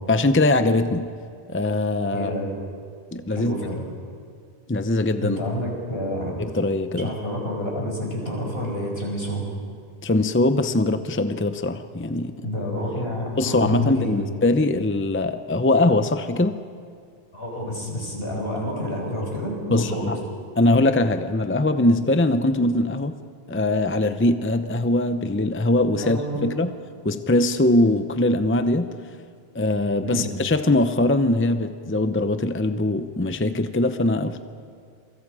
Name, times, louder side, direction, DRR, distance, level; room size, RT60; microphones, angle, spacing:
voice 1, 0.1-1.1 1.5-2.3 3.1-3.5 4.7-5.4 6.4-7.1 10.0-12.5 13.4-16.6 19.7-20.2 20.6-23.1 23.5-26.7 27.0-28.9 29.5-34.4, left 2 dB, 15° left, 9 dB, 0.7 m, -21 dB
voice 2, 2.1-2.5 3.3-3.9 5.2-6.3 6.9-9.5 12.4-14.2 17.3-20.2 25.8-26.5 30.0-30.3, equal, 70° left, -1 dB, 5.5 m, -29 dB
27.0 x 24.5 x 5.0 m, 2.3 s
omnidirectional pair, 1.1 m